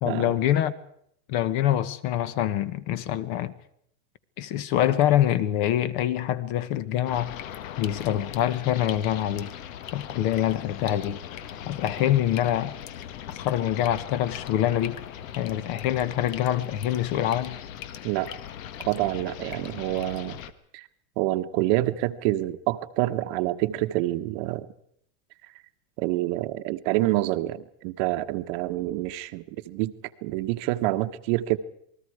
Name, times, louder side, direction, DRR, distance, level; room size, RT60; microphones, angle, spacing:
voice 1, 0.0-0.7 1.3-3.5 4.4-7.4 7.8-9.5 9.9-11.2 11.6-12.7 13.3-15.0 15.3-17.6, left 12 dB, 40° left, 1.2 m, -25 dB
sound 1, 7.1-20.5, left 10 dB, 65° left, 1.7 m, -39 dB
voice 2, 18.9-20.4 20.7-20.9 21.2-24.7 26.0-29.9 30.2-31.6, right 16 dB, 45° right, 1.2 m, -27 dB
28.0 x 20.0 x 4.8 m
supercardioid pair, 155°, 42 cm